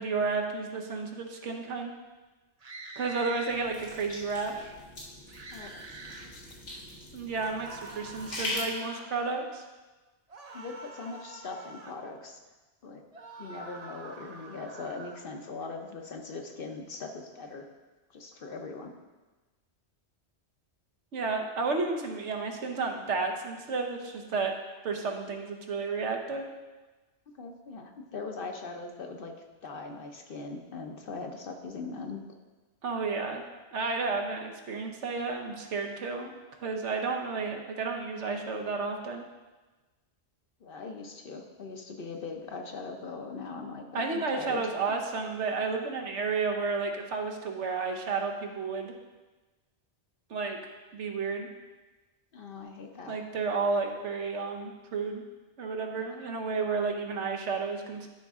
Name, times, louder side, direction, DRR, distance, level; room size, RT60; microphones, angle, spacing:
voice 1, 0.0-1.9 3.0-4.8 7.1-9.6 21.1-24.5 24.8-26.4 32.8-33.4 33.7-36.3 36.6-39.2 43.9-48.9 50.3-50.6 50.9-51.5 53.1-55.2 55.6-58.1, right 4 dB, 80° right, 3 dB, 1.3 m, -32 dB
sound 1, 2.6-3.6 5.3-6.3 7.5-9.1 10.3-12.0 13.1-15.3, right 3 dB, 40° right, 0.7 m, -46 dB
sound 2, 3.5-8.6, left 2 dB, 85° left, 2.0 m, -41 dB
voice 2, 5.5-5.8 6.2-6.6 10.5-12.4 12.8-13.0 13.4-17.7 18.1-18.9 27.3-29.3 29.6-32.2 40.6-44.8 52.3-53.2 56.0-56.2, left 4 dB, 55° left, 4 dB, 0.9 m, -40 dB
11.5 x 5.2 x 3.6 m, 1.2 s
omnidirectional pair, 1.2 m